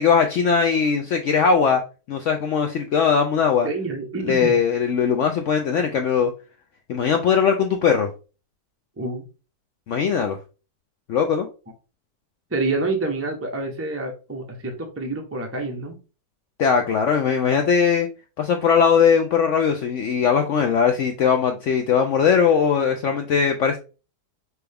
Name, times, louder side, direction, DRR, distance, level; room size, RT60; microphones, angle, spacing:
voice 1, 0.0-3.7 4.2-6.3 6.9-8.1 9.9-10.4 11.1-11.5 16.6-18.1 18.4-23.8, left 6 dB, 70° left, 4 dB, 0.7 m, -20 dB
voice 2, 3.6-4.6 9.0-9.2 12.5-16.0, right 3 dB, 20° right, 2 dB, 0.4 m, -27 dB
6.0 x 2.2 x 3.4 m, 0.33 s
omnidirectional pair, 1.8 m